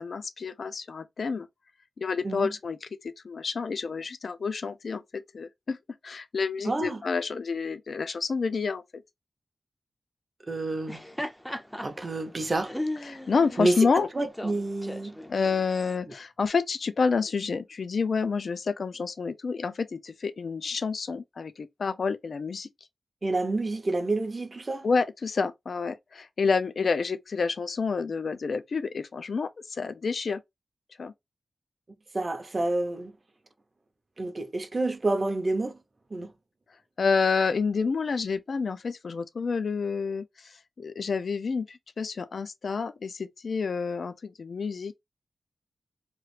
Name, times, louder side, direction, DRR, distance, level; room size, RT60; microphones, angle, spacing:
voice 1, 0.0-1.5 2.0-5.0 5.3-5.8 6.0-8.8 13.1-14.1 15.3-22.7 24.8-30.4 31.0-31.1 37.0-40.2 40.8-45.0, left 5 dB, 65° left, 0.4 m, -29 dB
voice 2, 6.7-7.0 10.5-11.0 11.8-12.7 13.6-15.2 23.2-24.9 32.1-33.1 34.2-35.8 36.1-36.3, right 2 dB, 35° right, 0.6 m, -28 dB
Laughter, 10.7-16.0, left 1 dB, 5° left, 0.5 m, -38 dB
3.0 x 2.3 x 3.2 m
wide cardioid pair, 110°, 0 cm